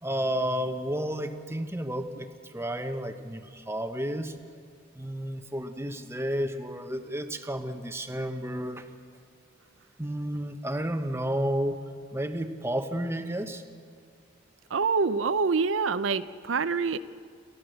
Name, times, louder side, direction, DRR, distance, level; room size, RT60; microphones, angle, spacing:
voice 1, 0.0-4.3 4.9-8.9 10.0-11.8 12.1-13.6, equal, 15° right, 7 dB, 1.1 m, -31 dB
voice 2, 14.7-17.0, right 5 dB, 75° right, 12 dB, 0.6 m, -26 dB
28.5 x 13.0 x 7.8 m, 2.3 s
head